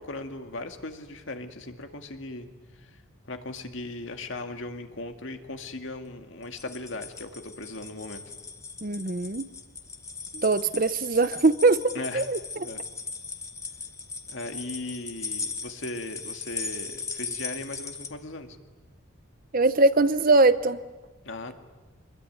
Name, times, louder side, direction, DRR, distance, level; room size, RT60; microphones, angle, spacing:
voice 1, 0.0-2.5 2.8-2.9 3.3-8.2 11.9-12.3 12.6-12.8 14.3-18.6 21.2-21.5, left 2 dB, 60° left, 6 dB, 2.2 m, -38 dB
sound 1, 6.4-18.1, left 4 dB, 15° left, 1.3 m, -38 dB
voice 2, 8.8-9.5 10.3-12.7 19.5-20.8, right 3 dB, 40° right, 13 dB, 0.8 m, -22 dB
25.5 x 21.5 x 9.5 m, 1.2 s
head